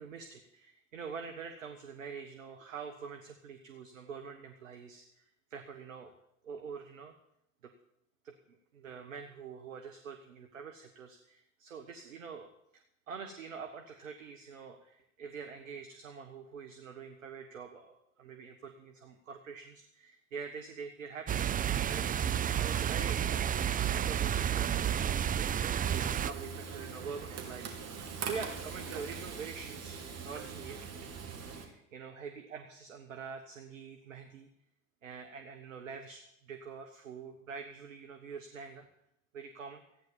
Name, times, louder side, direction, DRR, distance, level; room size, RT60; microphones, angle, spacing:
voice 1, 0.0-6.1 6.4-7.1 7.6-7.7 8.2-23.6 23.9-24.7 24.9-30.0 30.2-30.9 31.4-34.5 35.0-38.9 39.3-39.8, right 5 dB, 85° right, 6 dB, 1.3 m, -45 dB
sound 1, 21.3-26.3, right 9 dB, 20° right, 0.5 m, -31 dB
Frying (food), 25.8-31.7, right 5 dB, 40° right, 2.8 m, -42 dB
15.0 x 9.6 x 7.1 m, 0.78 s
hypercardioid pair, 70°, 38 cm